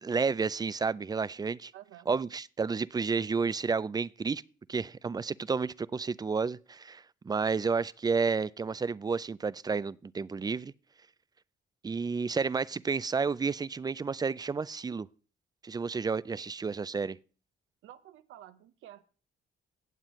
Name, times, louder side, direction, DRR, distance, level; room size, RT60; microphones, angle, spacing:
voice 1, 0.0-1.7 2.1-4.4 4.7-10.7 11.8-15.1 15.6-17.2, right 5 dB, 20° right, 0.4 m, -31 dB
voice 2, 1.7-2.1 16.4-16.5 17.8-19.0, right 12 dB, 85° right, 0.8 m, -51 dB
17.0 x 7.4 x 3.1 m
cardioid pair, 90°, 20 cm